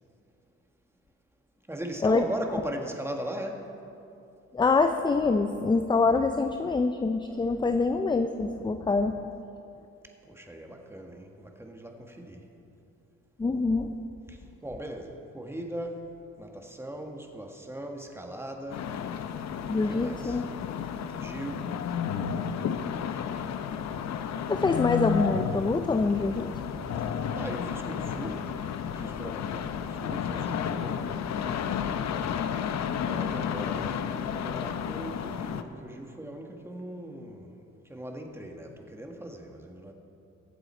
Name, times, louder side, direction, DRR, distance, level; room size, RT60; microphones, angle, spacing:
voice 1, 1.7-3.7 10.2-12.4 14.3-16.0 16.4-18.9 19.9-20.4 21.2-21.7 27.0-28.5 28.9-31.1 33.0-37.5 37.9-39.9, right 1 dB, 10° right, 3 dB, 1.6 m, -39 dB
voice 2, 4.5-9.3 13.4-13.9 19.7-20.5 24.5-26.5, left 3 dB, 15° left, 7 dB, 0.5 m, -25 dB
sound 1, 18.7-35.6, left 8 dB, 65° left, 0.8 m, -32 dB
22.5 x 7.7 x 4.4 m, 2.7 s
cardioid pair, 90°, 30 cm